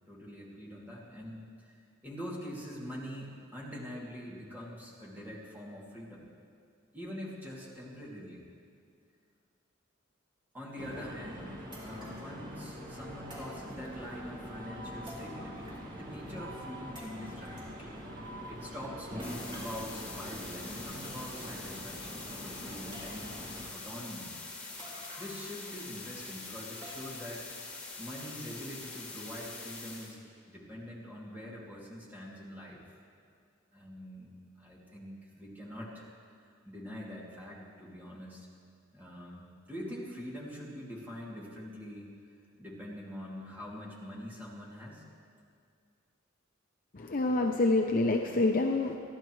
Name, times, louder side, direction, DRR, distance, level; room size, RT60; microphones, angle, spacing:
voice 1, 0.1-1.7 2.0-6.3 6.9-8.4 10.5-11.6 11.8-18.0 18.5-23.4 23.7-24.4 25.2-27.5 28.0-30.2 30.5-32.8 33.7-34.3 34.6-36.1 36.6-38.5 38.9-42.1 42.6-45.0, equal, 10° right, -5 dB, 2.7 m, -44 dB
sound 1, 10.8-23.7, equal, 40° right, 2.2 m, -44 dB
sound 2, 10.9-11.0 11.7-12.3 13.3-14.2 15.1-16.0 16.3-16.4 17.0-17.7 19.2-19.8 20.6-20.7 21.0-21.6 21.9-22.0 22.9-23.5 24.8-25.6 25.9-26.0 26.8-27.3 27.8-27.9 28.5-28.6, equal, 25° right, 3.8 m, -51 dB
sound 3, 19.2-30.1, left 3 dB, 5° left, 2.8 m, -44 dB
voice 2, 46.9-49.0, left 2 dB, 45° left, 2 dB, 0.7 m, -27 dB
27.5 x 11.5 x 3.2 m, 2.3 s
head